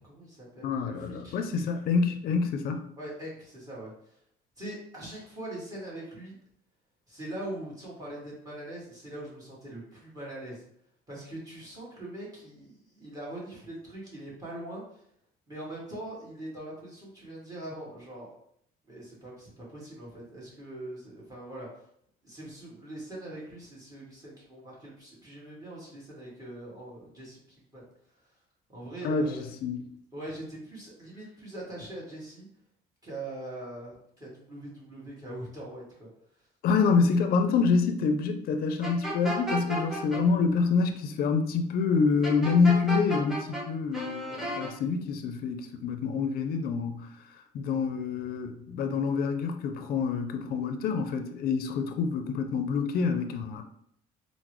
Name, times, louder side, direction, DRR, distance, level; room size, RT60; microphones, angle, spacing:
voice 1, 0.0-1.4 3.0-4.2 4.6-6.4 7.1-10.6 11.1-15.0 15.5-18.3 18.9-21.7 22.2-27.8 28.2-28.3 28.7-29.5 30.1-32.5 33.0-36.1, right 1 dB, 20° right, -5 dB, 1.5 m, -42 dB
voice 2, 0.6-2.8 29.0-29.9 36.6-47.1 47.5-53.6, left 5 dB, 65° left, 7 dB, 0.4 m, -27 dB
sound 1, 38.8-40.2 42.2-43.6 43.9-44.7, right 1 dB, ahead, 0.9 m, -32 dB
3.7 x 2.0 x 3.0 m, 0.69 s
cardioid pair, 110°, 17 cm